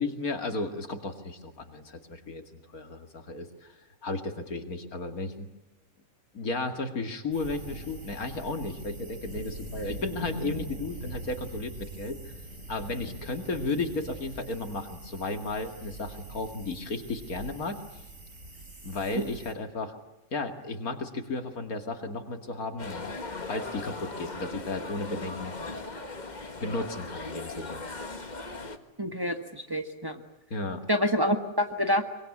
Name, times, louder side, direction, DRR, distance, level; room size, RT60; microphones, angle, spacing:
voice 1, 0.0-3.8 4.0-5.5 6.3-12.3 12.7-17.8 18.8-20.0 20.3-23.1 23.5-25.7 26.6-27.8 30.5-30.8, left 3 dB, 80° left, 6 dB, 2.8 m, -34 dB
sound 1, 7.3-19.5, right 1 dB, 60° right, 4.7 m, -42 dB
sound 2, 22.8-28.8, left 3 dB, 30° left, 1.7 m, -38 dB
voice 2, 29.0-30.2 30.9-32.0, equal, 15° right, 6 dB, 1.5 m, -27 dB
24.5 x 23.0 x 9.8 m, 0.91 s
omnidirectional pair, 1.5 m